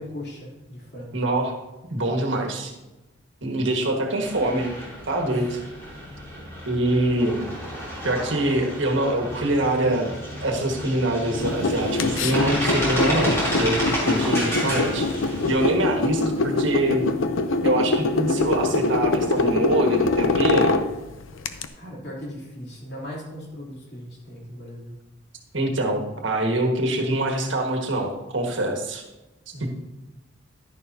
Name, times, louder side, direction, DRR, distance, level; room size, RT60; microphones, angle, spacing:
voice 1, 0.0-1.2 3.8-4.0 5.3-5.6 6.3-6.5 21.7-24.9 29.5-29.7, left 1 dB, 55° left, -4 dB, 3.2 m, -38 dB
voice 2, 1.1-1.5 1.9-2.7 3.4-4.7 5.1-5.4 6.7-7.4 8.0-10.1 10.4-15.1 15.5-17.1 17.6-20.8 25.5-29.0 29.6-29.7, right 1 dB, 70° right, 2 dB, 1.6 m, -24 dB
sound 1, 4.2-15.7, equal, 15° left, 3.2 m, -31 dB
sound 2, 11.3-21.7, left 3 dB, 85° left, 0.7 m, -24 dB
11.5 x 10.5 x 2.8 m, 1.0 s
head